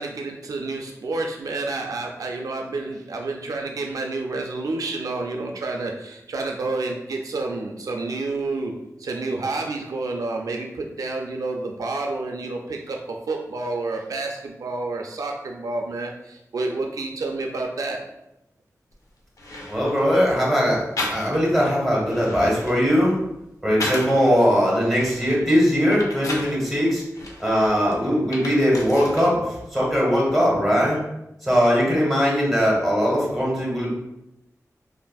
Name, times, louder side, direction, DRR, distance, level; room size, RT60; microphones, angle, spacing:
voice 1, 0.0-8.7 9.0-13.0 13.3-18.0, right 3 dB, 75° right, 1 dB, 0.3 m, -29 dB
sound 1, 18.9-19.0 19.4-20.1 21.0-21.6 22.0-24.2 24.7-26.6 27.1-29.3 29.6-30.4, left 1 dB, 70° left, 0.6 m, -34 dB
voice 2, 19.7-20.8 21.1-23.2 23.6-27.0 27.4-31.0 31.4-33.9, equal, ahead, -4 dB, 1.3 m, -20 dB
3.4 x 2.4 x 2.2 m, 0.87 s
wide cardioid pair, 65°, 6 cm